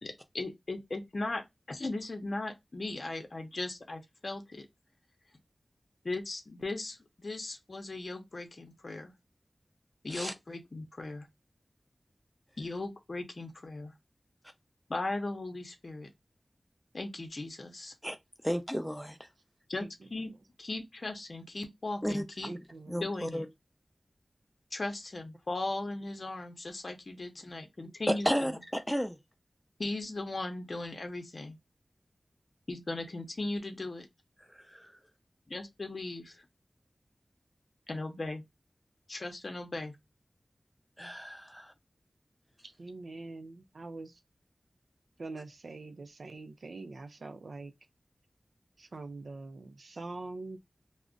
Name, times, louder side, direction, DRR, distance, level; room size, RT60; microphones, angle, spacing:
voice 1, 0.0-4.7 6.0-9.1 10.0-11.3 12.6-13.9 14.9-16.1 16.9-17.9 19.7-20.3 20.6-22.5 23.0-23.4 24.7-28.5 29.8-31.6 32.7-34.1 35.5-36.5 37.9-38.4 39.1-40.0, left 2 dB, 55° left, 0.6 m, -38 dB
voice 2, 18.5-19.0 22.0-22.2 22.9-23.5 28.1-29.2 34.7-34.9 41.0-41.7, equal, ahead, 0.5 m, -32 dB
voice 3, 22.4-23.0 27.8-27.9 42.6-44.2 45.2-47.7 48.8-50.6, right 3 dB, 85° right, 0.4 m, -44 dB
2.4 x 2.0 x 3.6 m
wide cardioid pair, 75°, 0 cm